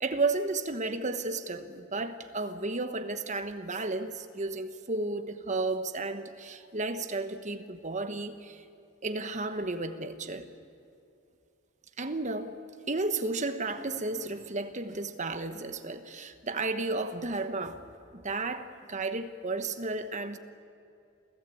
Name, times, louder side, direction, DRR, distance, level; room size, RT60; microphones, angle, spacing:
voice 1, 0.0-8.6 9.0-10.5 12.0-12.5 12.9-20.4, right 3 dB, 35° right, 9 dB, 1.2 m, -33 dB
27.5 x 16.0 x 8.5 m, 2.4 s
head